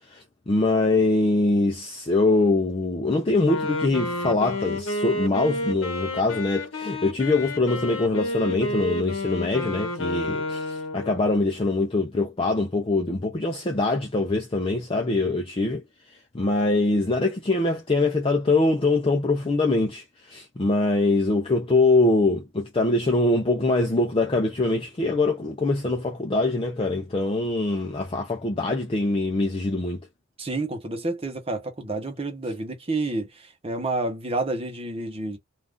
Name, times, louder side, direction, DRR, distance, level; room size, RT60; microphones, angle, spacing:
voice 1, 0.1-15.8 16.3-30.0, left 2 dB, 25° left, 0.4 m, -23 dB
Wind instrument woodwind instrument, 3.4-11.3, left 1 dB, 80° left, 0.8 m, -30 dB
voice 2, 30.4-35.4, right 2 dB, 30° right, 0.9 m, -29 dB
2.5 x 2.4 x 3.5 m
head